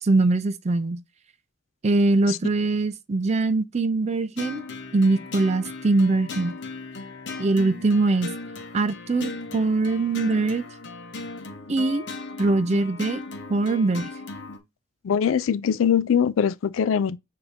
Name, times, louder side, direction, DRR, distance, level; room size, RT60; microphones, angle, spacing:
voice 1, 0.0-1.0 1.8-4.6 4.9-6.6 7.4-8.3 8.7-10.6 11.7-12.0 12.4-13.2 13.5-14.1, right 3 dB, 35° right, 0.4 m, -22 dB
sound 1, 4.4-14.6, left 3 dB, 60° left, 0.9 m, -37 dB
voice 2, 15.0-17.2, left 8 dB, 85° left, 0.4 m, -22 dB
6.8 x 2.8 x 2.6 m
head